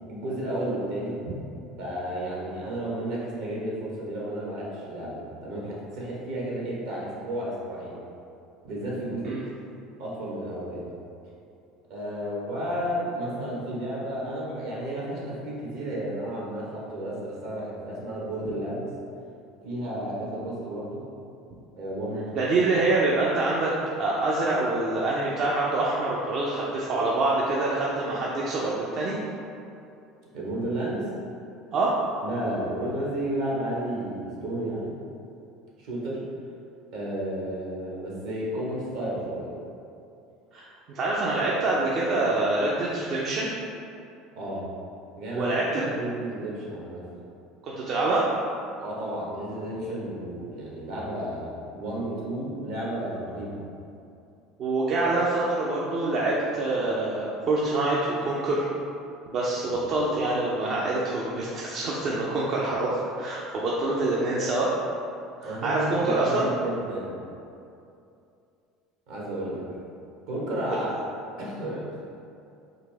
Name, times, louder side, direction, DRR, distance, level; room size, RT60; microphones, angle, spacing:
voice 1, 0.1-1.2 1.8-8.0 8.6-9.4 10.0-10.9 11.9-18.9 19.6-21.1 21.8-22.4 30.3-31.1 32.2-35.0 35.8-36.3 36.9-39.5 44.3-44.7 45.2-47.0 48.8-53.7 59.6-59.8 65.4-67.2 69.1-69.6 70.3-71.0 71.4-71.9, right 1 dB, 70° right, -5 dB, 1.1 m, -32 dB
voice 2, 22.3-29.2 31.7-32.0 40.5-43.5 45.3-45.8 47.6-48.3 54.6-58.6 59.3-64.7 65.4-66.5, right 2 dB, 55° right, -5 dB, 0.5 m, -26 dB
3.9 x 2.7 x 3.3 m, 2.6 s
hypercardioid pair, 70°, 0 cm